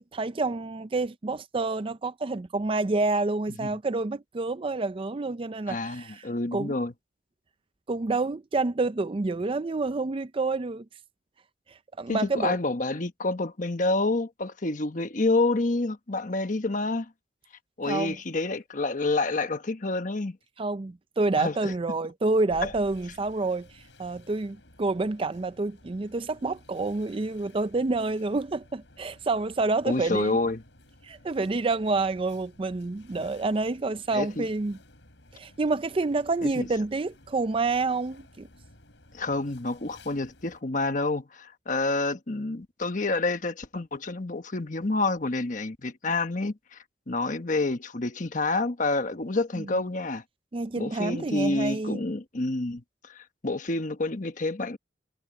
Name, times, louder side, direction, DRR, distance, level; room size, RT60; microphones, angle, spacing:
voice 1, 0.0-6.7 7.9-10.9 11.7-12.6 17.8-18.2 20.6-30.3 31.0-34.8 35.3-38.5 49.6-49.8 50.5-52.0, right 3 dB, 30° right, 0.4 m, -28 dB
voice 2, 5.7-6.9 12.1-17.1 17.8-20.4 21.4-21.7 22.6-22.7 29.8-30.6 34.1-34.5 36.4-36.7 39.1-46.8 47.1-50.2 50.8-54.8, left 2 dB, 45° left, 1.2 m, -28 dB
sound 1, 22.5-40.6, left 1 dB, 80° left, 5.7 m, -54 dB
head